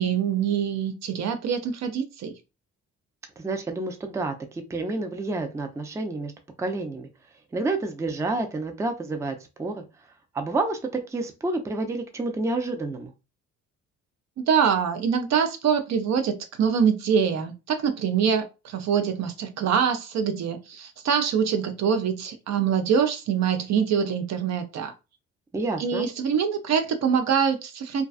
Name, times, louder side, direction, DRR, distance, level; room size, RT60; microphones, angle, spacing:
voice 1, 0.0-2.3 14.5-24.9 25.8-28.0, right 7 dB, 65° right, 0.5 m, -24 dB
voice 2, 3.4-6.3 6.6-7.1 7.5-9.8 10.3-13.1 25.5-26.1, right 2 dB, 10° right, 0.4 m, -29 dB
2.3 x 2.3 x 2.4 m
cardioid pair, 90°, 30 cm